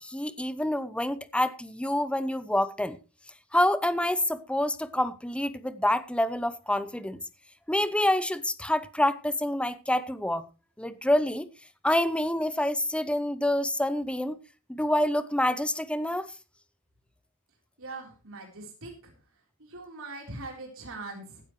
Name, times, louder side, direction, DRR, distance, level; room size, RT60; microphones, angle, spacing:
voice 1, 0.0-3.0 3.5-7.2 7.7-10.5 10.8-11.5 11.8-14.4 14.7-16.3, left 1 dB, 5° left, 0.8 m, -27 dB
voice 2, 17.8-19.1 19.6-21.4, right 3 dB, 65° right, 4.0 m, -41 dB
16.0 x 12.5 x 3.2 m
head